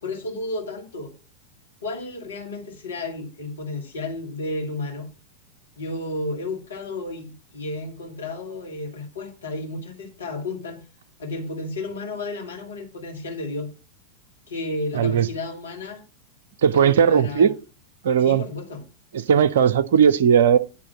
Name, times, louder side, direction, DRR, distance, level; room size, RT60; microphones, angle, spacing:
voice 1, 0.0-1.1 1.8-5.1 5.8-10.8 11.2-13.7 14.5-16.0 16.7-17.5 18.2-18.8, left 2 dB, 65° left, 2.0 m, -32 dB
voice 2, 14.9-15.3 16.6-17.5 18.0-18.4 19.1-20.6, right 7 dB, 60° right, 0.6 m, -17 dB
9.9 x 3.6 x 7.2 m
figure-of-eight pair, 90°, 0 cm